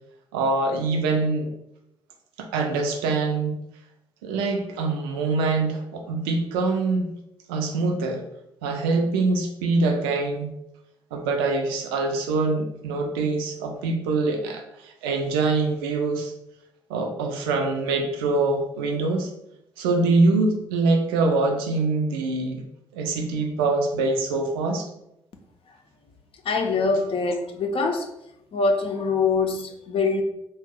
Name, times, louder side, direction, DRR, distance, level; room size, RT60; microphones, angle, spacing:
voice 1, 0.3-1.5 2.4-3.6 4.2-7.1 7.5-8.2 8.6-10.5 11.1-16.3 16.9-19.3 19.8-22.6 22.9-24.9, right 3 dB, 80° right, 0.4 m, -24 dB
voice 2, 26.4-28.1 28.5-30.2, left 4 dB, 50° left, 0.5 m, -24 dB
2.9 x 2.1 x 3.5 m
hypercardioid pair, 40°, 12 cm